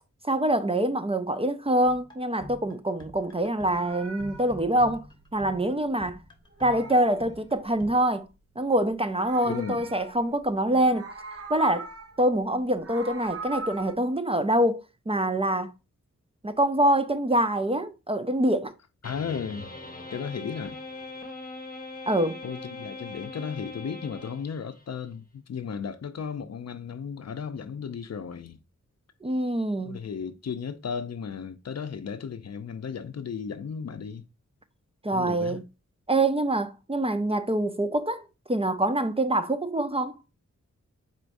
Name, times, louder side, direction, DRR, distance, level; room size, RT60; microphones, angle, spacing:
voice 1, 0.2-5.0 5.3-6.2 6.6-8.3 8.6-11.0 11.5-11.9 12.2-15.7 16.4-18.7 22.1-22.4 29.2-30.0 35.0-35.6 36.1-40.2, right 1 dB, 20° right, 0.5 m, -25 dB
sound 1, 1.8-7.9, left 2 dB, 15° left, 1.2 m, -46 dB
Meow, 3.4-6.1 6.4-8.1 8.9-10.5 10.8-12.2 12.6-13.9, right 3 dB, 50° right, 1.0 m, -41 dB
voice 2, 9.4-9.9 19.0-19.7 20.1-20.8 22.4-28.6 29.8-34.3 35.1-35.6, left 6 dB, 60° left, 0.6 m, -35 dB
sound 2, 19.0-24.8, left 2 dB, 30° left, 1.0 m, -41 dB
4.6 x 4.5 x 2.5 m
wide cardioid pair, 105°, 30 cm